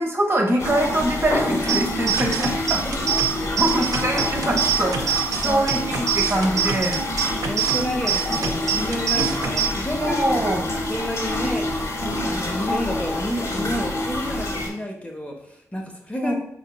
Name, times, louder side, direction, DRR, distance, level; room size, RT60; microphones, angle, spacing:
voice 1, 0.0-2.8 3.6-7.0 8.3-8.4 10.0-10.6 16.2-16.4, right 1 dB, 40° right, 1 dB, 0.8 m, -23 dB
sound 1, 0.6-14.7, left 1 dB, 55° left, 0.8 m, -27 dB
sound 2, 1.7-9.7, right 8 dB, 70° right, 0.4 m, -25 dB
voice 2, 5.3-5.6 7.5-10.2 10.9-11.6 12.0-16.4, left 1 dB, 20° left, 1 dB, 0.6 m, -30 dB
3.9 x 2.8 x 2.2 m, 0.71 s
cardioid pair, 55°, 6 cm